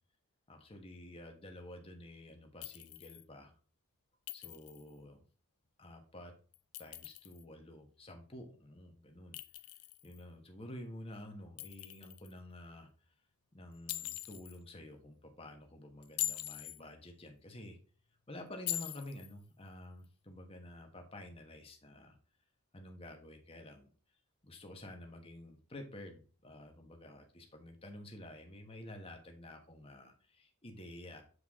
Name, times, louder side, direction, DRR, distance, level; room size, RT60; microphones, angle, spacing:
voice 1, 0.5-3.5 4.3-5.3 5.8-6.3 6.8-9.4 10.0-12.9 13.5-17.8 18.3-22.2 22.7-23.9 24.4-31.2, left 1 dB, 25° left, 3 dB, 1.4 m, -50 dB
Chink clink, 2.6-3.2 4.3-4.9 6.5-7.4 9.3-10.2 11.6-12.3 13.9-14.6 16.0-16.8 18.7-19.3, left 15 dB, 80° left, 0.5 m, -42 dB
8.1 x 4.7 x 3.7 m, 0.40 s
head